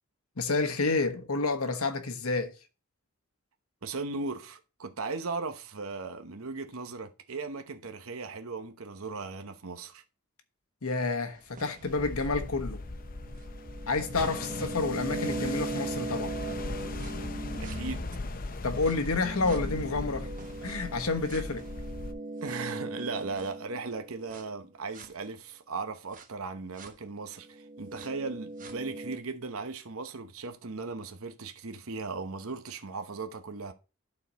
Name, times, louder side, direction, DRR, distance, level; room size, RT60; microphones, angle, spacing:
voice 1, 0.4-2.6 10.8-12.8 13.9-16.3 18.6-20.3 20.6-21.7, left 3 dB, 75° left, 1.2 m, -29 dB
voice 2, 3.8-10.0 17.6-18.1 22.4-33.7, right 4 dB, 70° right, 0.9 m, -37 dB
sound 1, 11.4-18.3 18.8-24.5 24.9-25.1 26.1-26.2 26.8-26.9 27.4-29.2, right 2 dB, 35° right, 1.0 m, -40 dB
sound 2, 11.9-22.1, left 2 dB, 40° left, 0.7 m, -38 dB
12.0 x 4.3 x 4.0 m
head